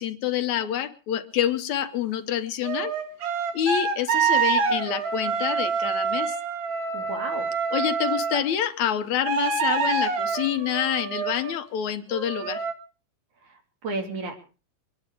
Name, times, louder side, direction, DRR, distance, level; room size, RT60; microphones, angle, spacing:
voice 1, 0.0-2.9 3.5-6.4 7.7-12.6, left 10 dB, 70° left, 9 dB, 2.2 m, -27 dB
sound 1, 2.6-8.4 9.2-11.6 12.1-12.7, right 5 dB, 50° right, 2.6 m, -26 dB
voice 2, 6.9-7.5 13.5-14.3, right 3 dB, 70° right, 3 dB, 4.4 m, -33 dB
24.5 x 10.5 x 4.9 m, 0.36 s
omnidirectional pair, 3.6 m